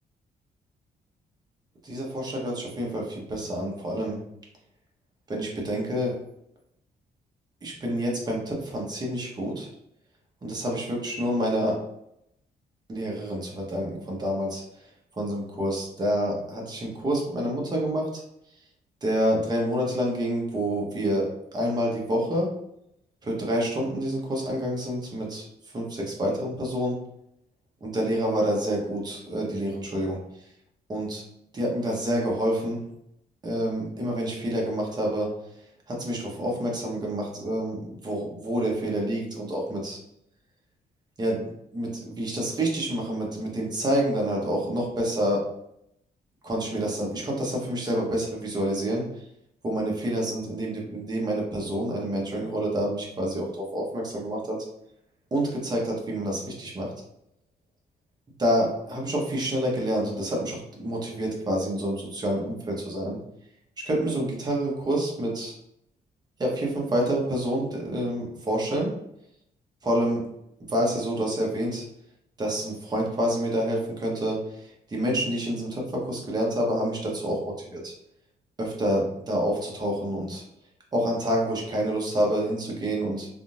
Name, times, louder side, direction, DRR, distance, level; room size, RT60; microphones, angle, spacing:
voice 1, 1.8-4.2 5.3-6.1 7.6-9.7 10.4-11.8 12.9-14.6 15.2-18.2 19.0-22.5 23.2-25.4 25.7-27.0 27.8-30.2 30.9-31.2 31.5-32.9 33.4-35.3 35.9-40.0 41.2-41.5 41.7-45.4 46.4-49.1 49.6-54.6 55.3-56.9 58.4-63.2 63.8-65.5 66.4-68.9 69.8-70.2 70.7-71.8 72.4-77.9 78.6-80.4 80.9-83.3, equal, 25° right, -2 dB, 0.9 m, -28 dB
3.6 x 2.6 x 2.4 m, 0.78 s
cardioid pair, 140°, 16 cm